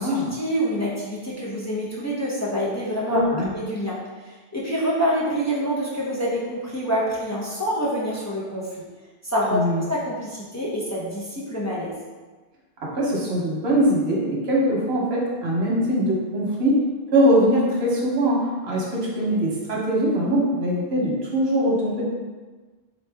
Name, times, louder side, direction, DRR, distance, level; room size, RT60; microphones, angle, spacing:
voice 1, 0.0-3.2 3.5-4.0 4.3-8.7 9.2-12.0, equal, 20° left, -7 dB, 0.6 m, -26 dB
voice 2, 3.1-3.5 9.5-9.8 12.8-16.8 17.1-22.0, equal, 90° right, -4 dB, 1.2 m, -22 dB
4.0 x 3.0 x 3.4 m, 1.3 s
omnidirectional pair, 1.0 m